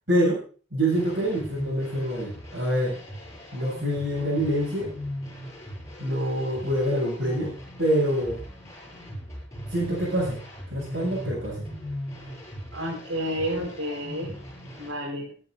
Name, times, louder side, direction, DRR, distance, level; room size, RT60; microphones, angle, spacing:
voice 1, 0.1-0.4 0.7-3.0 3.5-4.9 6.0-8.4 9.7-10.4 10.7-11.7, equal, 60° right, -7 dB, 7.8 m, -26 dB
sound 1, 0.9-14.9, equal, 15° left, 7.2 m, -39 dB
voice 2, 12.7-14.3 14.8-15.3, equal, 85° right, -2 dB, 4.7 m, -30 dB
24.5 x 11.0 x 2.7 m, 0.40 s
head